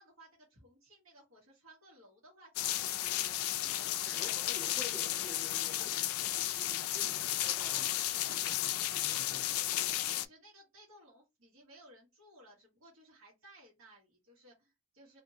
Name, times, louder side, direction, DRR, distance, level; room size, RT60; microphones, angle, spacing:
voice 1, 0.0-4.8 5.5-5.8 8.1-8.4 9.5-15.2, right 1 dB, 80° right, 1.2 m, -59 dB
sound 1, 2.5-10.2, left 13 dB, 85° left, 0.3 m, -33 dB
voice 2, 4.0-6.1 6.6-9.5, left 2 dB, ahead, 0.8 m, -51 dB
2.9 x 2.5 x 2.7 m
head